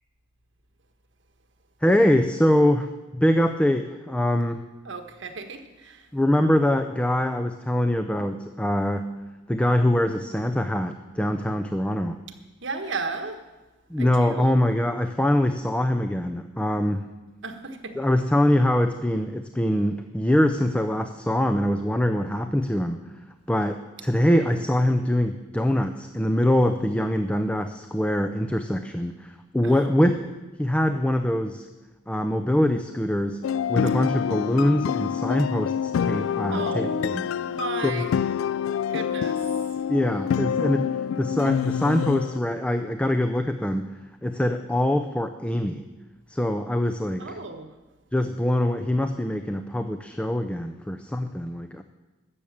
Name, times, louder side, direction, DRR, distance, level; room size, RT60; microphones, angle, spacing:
voice 1, 1.8-4.6 6.1-9.1 9.5-12.2 13.9-17.0 18.0-23.0 23.5-30.3 30.6-31.7 32.1-33.4 33.7-37.2 37.8-38.0 39.9-40.9 41.2-43.9 44.2-45.8 46.3-47.2 48.1-51.8, left 1 dB, 5° left, 7 dB, 0.5 m, -23 dB
voice 2, 4.8-6.1 12.6-13.4 14.0-14.6 17.4-18.0 24.3-24.6 29.6-29.8 36.5-37.2 37.5-38.3 38.9-39.4 47.2-47.7, right 3 dB, 65° right, 7 dB, 1.4 m, -34 dB
sound 1, 33.4-42.4, left 8 dB, 80° left, 0.3 m, -27 dB
14.0 x 7.0 x 8.7 m, 1.1 s
head